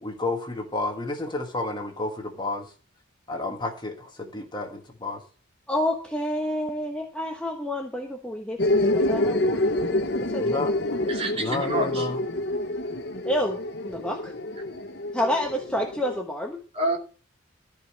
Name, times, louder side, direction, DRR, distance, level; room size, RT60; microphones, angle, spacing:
voice 1, 0.0-2.6 3.3-5.2 10.4-11.0 11.4-12.2, left 2 dB, 20° left, 3 dB, 1.5 m, -31 dB
voice 2, 5.7-9.6 9.9-10.0 10.3-10.6 13.2-13.6 13.9-14.3 15.1-16.6, left 1 dB, 5° left, 1 dB, 1.1 m, -29 dB
sound 1, 8.6-16.2, left 1 dB, 55° left, 1.0 m, -27 dB
voice 3, 11.1-12.1 16.7-17.0, right 2 dB, 30° right, 2 dB, 2.7 m, -28 dB
14.0 x 5.0 x 7.5 m, 0.38 s
head